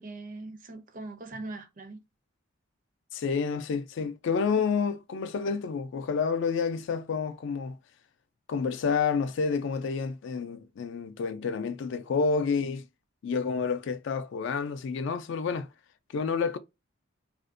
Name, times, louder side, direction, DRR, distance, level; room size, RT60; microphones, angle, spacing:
voice 1, 0.0-2.0 4.5-4.6, right 2 dB, 40° right, 0.4 m, -41 dB
voice 2, 3.1-7.8 8.5-12.9 13.2-15.7 16.1-16.6, left 5 dB, 60° left, 0.3 m, -29 dB
2.5 x 2.1 x 2.4 m
head